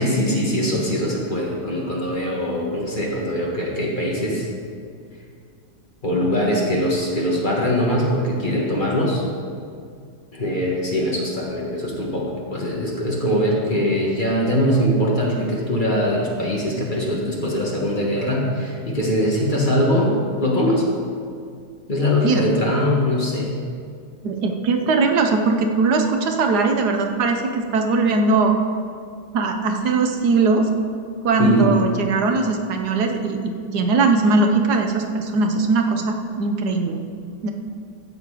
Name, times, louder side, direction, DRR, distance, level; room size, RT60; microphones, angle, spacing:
voice 1, 0.0-4.5 6.0-9.3 10.3-20.8 21.9-23.5 31.4-31.7, equal, 30° left, -3 dB, 1.6 m, -22 dB
voice 2, 22.2-22.6 24.2-28.5 29.3-30.7 31.2-37.0 37.4-37.5, right 3 dB, 70° right, 4 dB, 1.4 m, -20 dB
15.5 x 6.4 x 4.9 m, 2.3 s
omnidirectional pair, 1.8 m